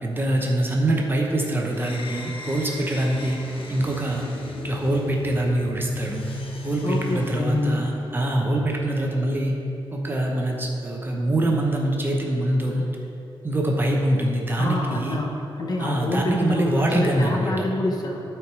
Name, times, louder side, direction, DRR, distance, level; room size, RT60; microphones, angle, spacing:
voice 1, 0.0-4.2 4.6-6.2 6.6-9.5 9.9-12.9 13.4-15.2 15.8-17.5, right 1 dB, 25° right, 0 dB, 0.9 m, -24 dB
sound 1, 1.7-8.3, left 2 dB, 85° left, 1.0 m, -35 dB
voice 2, 6.8-7.8 14.6-18.2, left 2 dB, 45° left, 0 dB, 1.0 m, -27 dB
12.0 x 4.5 x 4.7 m, 2.8 s
wide cardioid pair, 155°, 9 cm